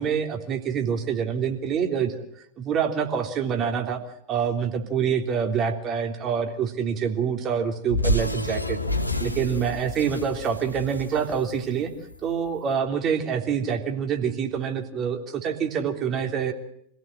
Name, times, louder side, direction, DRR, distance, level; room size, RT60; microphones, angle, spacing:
voice 1, 0.0-2.2 2.6-4.0 4.3-8.8 9.2-11.9 12.2-16.5, right 7 dB, 30° right, 4 dB, 3.4 m, -26 dB
sound 1, 7.9-12.3, left 1 dB, 85° left, 2.0 m, -29 dB
26.0 x 16.5 x 7.8 m, 0.72 s
figure-of-eight pair, 90°, 0 cm